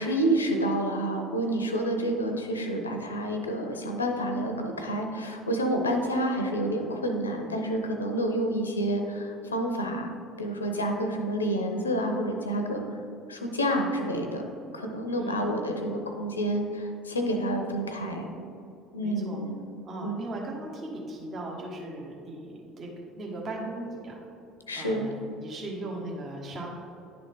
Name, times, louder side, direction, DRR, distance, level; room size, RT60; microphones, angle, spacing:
voice 1, 0.0-12.8 13.3-14.4 14.7-18.3 18.9-19.6 20.0-20.2 24.7-25.0, right 1 dB, 90° left, 4 dB, 0.6 m, -29 dB
voice 2, 15.1-15.6 19.0-19.4 19.8-22.9 23.2-24.2 24.7-26.7, right 2 dB, 45° right, -1 dB, 1.2 m, -38 dB
10.5 x 3.9 x 3.7 m, 2.6 s
figure-of-eight pair, 60°, 0 cm